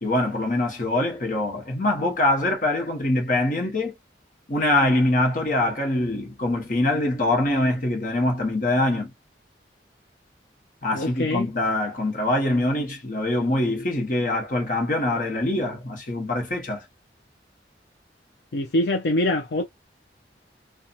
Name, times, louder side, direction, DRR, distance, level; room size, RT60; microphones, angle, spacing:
voice 1, 0.0-3.9 4.5-9.1 10.8-16.8, left 1 dB, 45° left, 1.0 m, -24 dB
voice 2, 10.9-11.5 18.5-19.6, left 1 dB, 70° left, 0.5 m, -24 dB
2.7 x 2.3 x 2.3 m
head